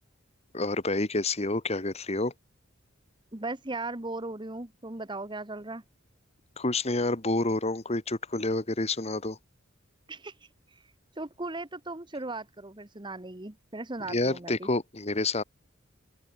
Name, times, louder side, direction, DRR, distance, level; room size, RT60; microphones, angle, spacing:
voice 1, 0.5-2.3 6.6-9.4 14.1-15.4, left 2 dB, 30° left, 1.8 m, -28 dB
voice 2, 3.3-5.8 10.1-10.3 11.2-14.7, right 2 dB, 20° right, 1.3 m, -37 dB
open air
head